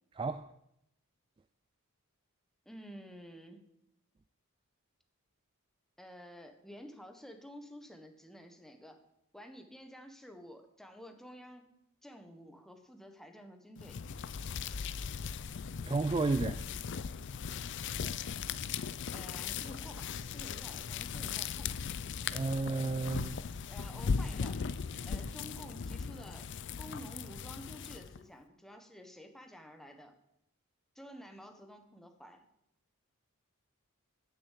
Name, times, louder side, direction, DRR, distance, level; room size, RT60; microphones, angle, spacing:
voice 1, 0.2-0.5 15.9-16.6 22.3-23.4, right 3 dB, 20° right, 10 dB, 0.3 m, -32 dB
voice 2, 2.6-3.6 6.0-9.0 9.3-11.7 12.0-14.0 19.1-21.9 23.7-24.6 25.0-26.5 26.8-30.2 30.9-32.5, equal, ahead, 5 dB, 1.2 m, -51 dB
sound 1, 13.8-28.2, left 6 dB, 55° left, 0.5 m, -38 dB
9.7 x 7.1 x 8.3 m, 0.80 s
head